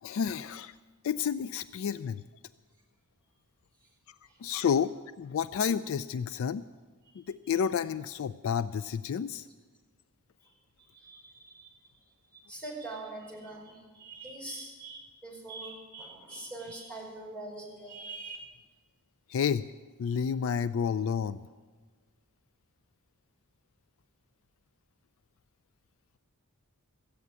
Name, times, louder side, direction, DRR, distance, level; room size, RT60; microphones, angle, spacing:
voice 1, 0.0-0.7 1.0-2.2 4.1-4.2 4.4-6.7 7.2-9.5 19.3-19.7 20.0-21.4, left 7 dB, 65° left, 14 dB, 0.3 m, -30 dB
voice 2, 10.8-11.8 12.3-18.4, right 2 dB, 5° left, -2 dB, 4.9 m, -43 dB
14.5 x 8.4 x 9.7 m, 1.4 s
head